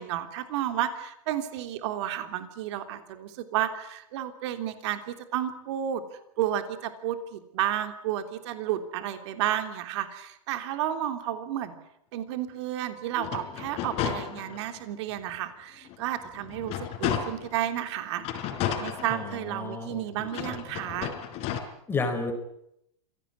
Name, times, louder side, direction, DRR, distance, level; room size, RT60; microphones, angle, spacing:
voice 1, 0.0-6.0 6.4-11.7 12.1-16.7 17.0-18.2 18.8-21.1, right 11 dB, 50° right, 8 dB, 3.3 m, -32 dB
sound 1, 13.1-14.8 15.3-15.4 15.8-17.6 18.2-19.7 20.3-21.6, left 9 dB, 35° left, 4.6 m, -33 dB
voice 2, 19.1-20.6 21.9-22.3, left 4 dB, 10° left, 5 dB, 4.3 m, -32 dB
27.0 x 17.5 x 9.7 m, 0.78 s
hypercardioid pair, 145°, 18 cm